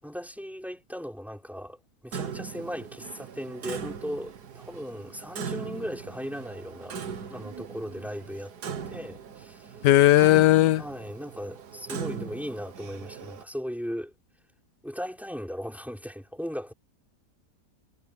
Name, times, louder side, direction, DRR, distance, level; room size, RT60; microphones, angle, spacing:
voice 1, 0.0-1.8 2.0-7.0 7.3-8.5 8.9-9.7 10.8-14.1 14.8-16.7, equal, ahead, 5.4 m, -37 dB
Clock, 2.1-13.4, right 6 dB, 75° right, 1.9 m, -40 dB
voice 2, 9.8-10.8, left 15 dB, 85° left, 1.2 m, -17 dB
omnidirectional pair, 1.8 m